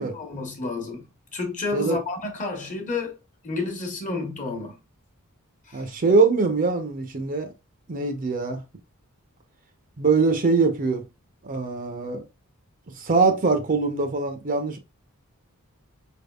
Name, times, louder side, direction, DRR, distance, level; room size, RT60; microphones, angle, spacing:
voice 1, 0.0-3.2 3.4-4.8 5.7-5.9, left 3 dB, 35° left, 1.1 m, -31 dB
voice 2, 5.7-7.5 7.9-8.6 10.0-11.0 11.4-12.2 13.0-14.8, right 4 dB, 40° right, 0.6 m, -22 dB
4.5 x 3.5 x 2.3 m
head